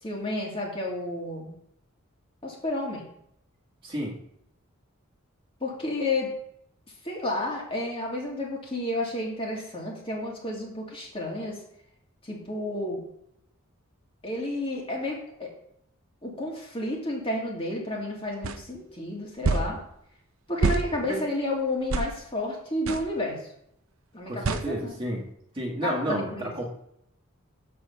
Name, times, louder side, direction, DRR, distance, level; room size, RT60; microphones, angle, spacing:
voice 1, 0.0-1.5 2.4-3.1 5.6-6.3 7.0-11.6 12.2-13.0 14.2-15.5 16.2-19.8 20.5-23.4 24.1-25.0 25.8-26.5, left 1 dB, 25° left, -2 dB, 2.1 m, -31 dB
voice 2, 3.8-4.1 21.1-21.2 24.3-25.2 25.5-26.7, right 1 dB, 25° right, -3 dB, 1.6 m, -31 dB
sound 1, 18.4-18.6 19.4-19.7 20.6-20.9 21.9-22.1 22.9-23.1 24.4-24.7, right 3 dB, 80° right, 0.6 m, -25 dB
7.7 x 4.9 x 6.8 m, 0.74 s
head